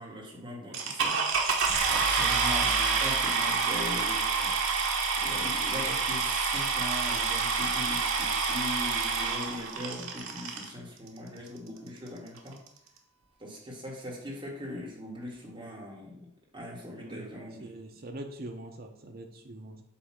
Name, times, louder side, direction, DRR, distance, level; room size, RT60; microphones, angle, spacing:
voice 1, 0.0-12.6 13.4-16.1 16.5-17.7, left 1 dB, 25° right, -3 dB, 1.8 m, -40 dB
sound 1, 0.7-10.7 11.5-11.6 12.1-12.2 12.4-12.7, right 5 dB, 70° right, 1.1 m, -28 dB
voice 2, 16.9-19.8, right 1 dB, 45° right, 3 dB, 1.0 m, -43 dB
8.2 x 2.7 x 6.0 m, 0.73 s
head